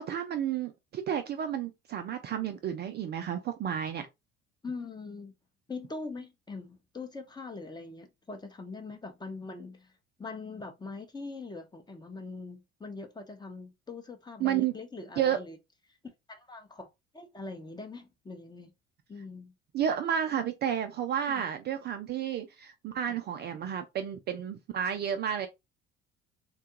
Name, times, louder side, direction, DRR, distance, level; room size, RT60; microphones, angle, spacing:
voice 1, 0.0-4.1 14.4-14.7 15.2-15.4 19.7-25.5, right 9 dB, 30° right, 0.4 m, -31 dB
voice 2, 4.6-5.3 5.7-9.9 10.2-15.6 16.3-18.7 19.1-19.5 21.3-21.4 23.1-23.2, left 3 dB, 10° left, 0.7 m, -42 dB
3.5 x 2.2 x 2.9 m
figure-of-eight pair, 60°, 33 cm